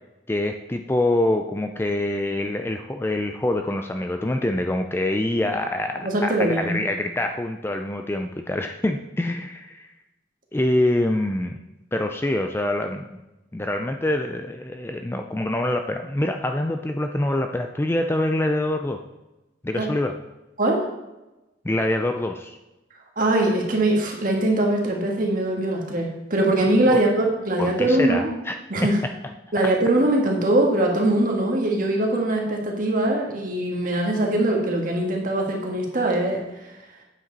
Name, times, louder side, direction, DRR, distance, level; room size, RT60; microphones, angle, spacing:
voice 1, 0.3-9.9 10.5-11.6 11.9-13.2 13.5-19.0 19.6-20.2 21.6-22.6 26.9-27.0 27.6-28.6 28.8-28.9 29.6-29.7, left 1 dB, 10° left, 5 dB, 0.4 m, -25 dB
voice 2, 6.0-6.8 19.8-19.9 20.6-20.9 23.2-28.3 28.7-29.0 29.5-36.4, right 1 dB, 45° right, 0 dB, 1.7 m, -22 dB
9.0 x 7.6 x 4.0 m, 1.0 s
head